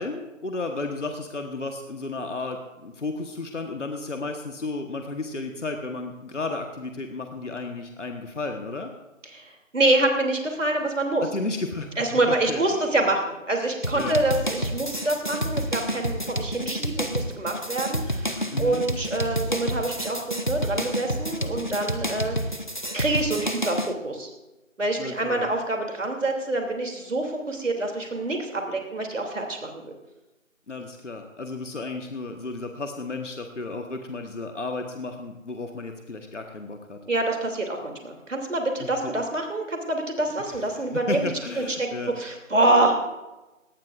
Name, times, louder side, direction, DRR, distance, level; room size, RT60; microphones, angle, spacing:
voice 1, 0.0-8.9 11.2-13.0 13.9-14.2 18.5-18.9 25.0-25.5 30.7-37.0 38.8-39.1 40.5-42.1, left 3 dB, 65° left, 4 dB, 1.4 m, -33 dB
voice 2, 9.3-11.2 12.0-22.4 22.9-24.3 24.8-29.9 37.1-41.3 41.6-41.9 42.2-43.0, right 2 dB, 70° right, 3 dB, 3.0 m, -26 dB
sound 1, 13.8-23.9, equal, 35° left, 0.7 m, -29 dB
19.0 x 18.0 x 2.5 m, 1.1 s
figure-of-eight pair, 180°, 39 cm